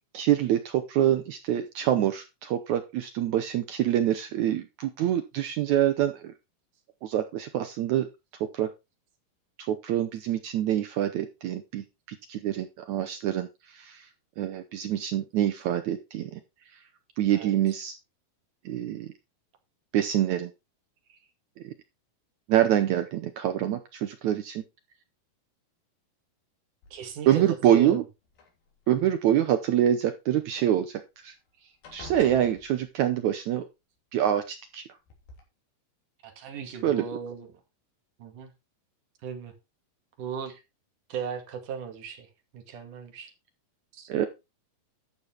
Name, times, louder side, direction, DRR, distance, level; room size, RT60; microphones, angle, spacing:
voice 1, 0.1-6.3 7.0-8.1 8.5-8.7 9.6-14.1 14.4-16.4 17.2-17.9 18.7-19.1 19.9-20.5 21.6-21.7 22.5-24.6 27.3-28.0 28.9-31.3 31.9-33.6 34.1-34.8 36.8-37.0 44.1-44.3, right 11 dB, 80° right, 1.6 m, -26 dB
sound 1, 26.8-27.4 28.3-29.1 30.9-31.0 31.3-31.5 31.8-33.3 34.4-34.5 35.1-35.4, left 3 dB, 65° left, 5.0 m, -48 dB
voice 2, 26.9-27.4 27.7-28.0 36.2-37.5 38.2-38.5 39.2-39.5 40.2-40.5 41.1-42.3 42.5-43.3 43.9-44.1, right 7 dB, 60° right, 3.3 m, -37 dB
12.0 x 6.6 x 4.4 m
omnidirectional pair, 4.5 m